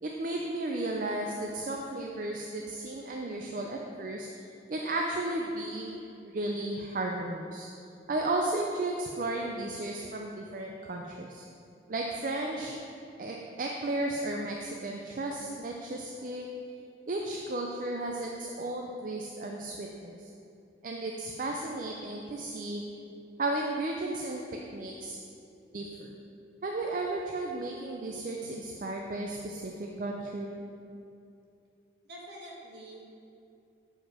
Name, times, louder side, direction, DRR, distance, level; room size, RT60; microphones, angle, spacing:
voice 1, 0.0-4.3 4.7-6.0 6.2-7.7 8.1-11.4 11.9-12.8 13.2-16.5 17.1-20.3 20.8-22.8 23.4-24.4 24.7-25.2 25.7-26.1 26.6-30.6, right 2 dB, 45° right, 1 dB, 0.4 m, -34 dB
voice 2, 32.0-33.0, equal, 65° right, -3 dB, 1.4 m, -46 dB
7.3 x 5.0 x 4.8 m, 2.7 s
head